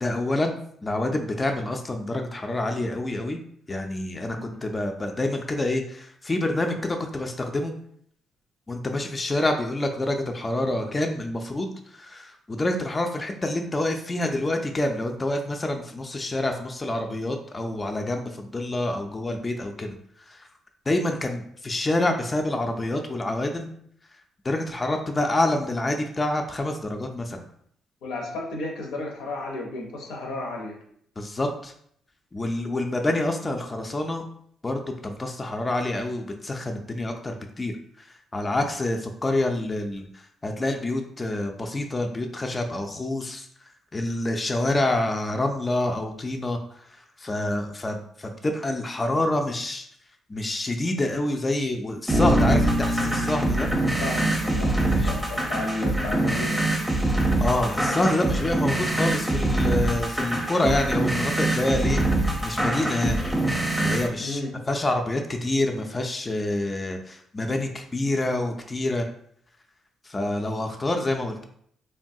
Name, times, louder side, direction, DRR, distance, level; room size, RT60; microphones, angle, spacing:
voice 1, 0.0-3.4 3.7-7.7 8.7-19.9 20.3-20.4 20.9-23.7 24.4-27.4 31.2-31.7 32.3-34.2 34.6-37.7 38.3-40.1 40.4-43.5 43.9-46.6 47.2-49.9 50.3-53.7 54.9-55.1 57.4-62.0 62.4-63.3 63.8-64.4 64.7-69.1 70.1-71.4, left 1 dB, 25° left, 4 dB, 0.3 m, -27 dB
voice 2, 28.0-30.8 54.0-56.7 64.2-64.5, left 2 dB, 90° left, 1 dB, 0.6 m, -33 dB
sound 1, 52.1-64.1, right 2 dB, 5° right, 0.7 m, -24 dB
Bass guitar, 52.1-56.0, left 1 dB, 40° right, 0.5 m, -28 dB
3.2 x 2.2 x 2.6 m, 0.66 s
cardioid pair, 90°, 0 cm